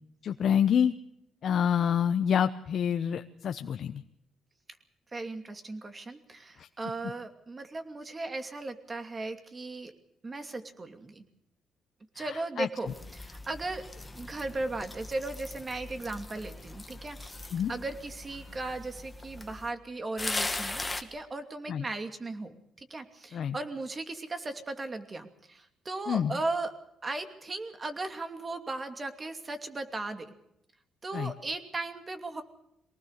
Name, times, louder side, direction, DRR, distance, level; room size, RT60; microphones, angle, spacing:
voice 1, 0.2-0.9 1.4-4.0 6.6-6.7 12.2-12.7 17.5-17.7 21.7-21.8 23.3-23.5 26.1-26.3 31.1-31.3, left 8 dB, 55° left, 8 dB, 0.9 m, -27 dB
voice 2, 5.1-9.9 10.2-11.2 12.1-26.7 27.0-30.3 31.0-32.4, right 2 dB, 25° right, 7 dB, 2.7 m, -37 dB
sound 1, 12.9-19.7 20.2-21.0, left 2 dB, 15° left, 1.9 m, -39 dB
24.0 x 19.0 x 6.6 m, 0.78 s
cardioid pair, 120°, 0 cm